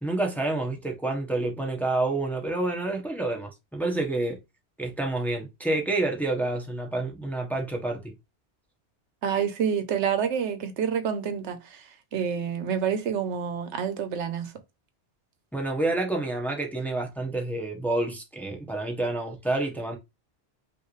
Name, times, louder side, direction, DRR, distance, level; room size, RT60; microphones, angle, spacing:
voice 1, 0.0-4.4 4.8-8.0 15.5-20.0, right 2 dB, ahead, 1.0 m, -28 dB
voice 2, 9.2-14.5, right 7 dB, 90° right, 1.0 m, -28 dB
5.5 x 2.6 x 3.1 m
omnidirectional pair, 1.2 m